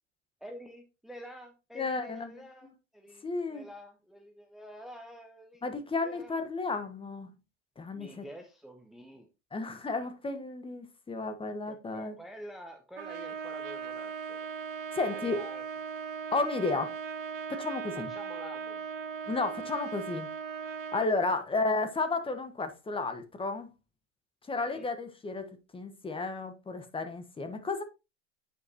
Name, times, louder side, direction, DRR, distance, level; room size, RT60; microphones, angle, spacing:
voice 1, 0.4-5.6 6.0-6.4 7.9-9.3 11.7-14.5 15.0-15.6 16.8-17.0 17.9-18.9 21.3-21.4 24.6-24.9, equal, ahead, 0.9 m, -48 dB
voice 2, 1.7-2.4 3.2-3.6 5.6-7.3 7.8-8.2 9.5-12.2 14.9-15.4 16.3-16.9 17.5-18.1 19.3-20.3 20.9-23.7 24.5-27.8, left 3 dB, 15° left, 1.3 m, -33 dB
Trumpet, 13.0-21.1, right 6 dB, 75° right, 1.0 m, -38 dB
9.2 x 5.6 x 2.9 m
hypercardioid pair, 95°, 37 cm